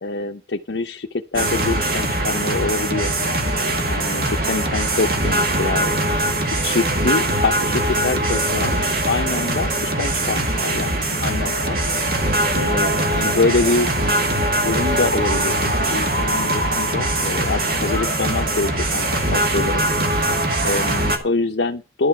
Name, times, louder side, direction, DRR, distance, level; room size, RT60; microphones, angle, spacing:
voice 1, 0.0-3.1 3.9-5.9 6.6-11.8 12.5-13.9 14.6-19.9 20.6-22.1, left 3 dB, 80° left, 1 dB, 0.7 m, -25 dB
sound 1, 1.3-21.2, right 1 dB, 55° right, 2.0 m, -21 dB
12.0 x 6.8 x 5.9 m, 0.32 s
head